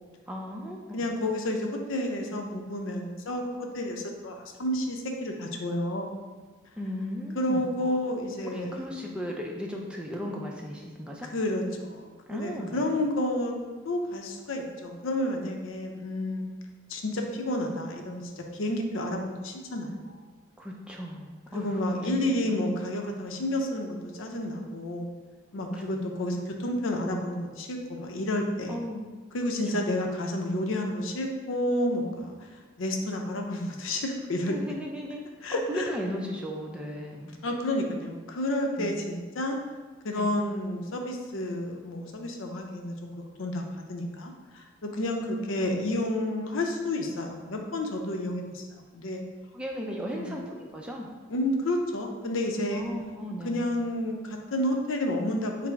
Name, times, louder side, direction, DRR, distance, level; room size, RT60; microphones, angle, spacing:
voice 1, 0.3-1.1 6.8-7.6 8.5-11.3 12.3-12.9 20.6-22.6 25.8-25.9 28.7-29.1 29.7-29.9 34.4-37.3 38.8-39.0 40.2-40.3 45.1-45.4 49.5-51.1 52.7-53.7, equal, 5° right, -1 dB, 0.4 m, -36 dB
voice 2, 0.9-6.1 7.4-8.8 11.3-13.5 13.8-16.4 16.9-20.2 21.5-25.1 25.5-28.8 29.3-34.6 35.4-35.9 37.4-39.6 40.0-43.1 43.4-48.7 48.9-49.2 50.1-50.4 51.3-52.8 53.4-55.7, left 1 dB, 85° left, 3 dB, 0.6 m, -30 dB
5.8 x 2.0 x 4.5 m, 1.3 s
head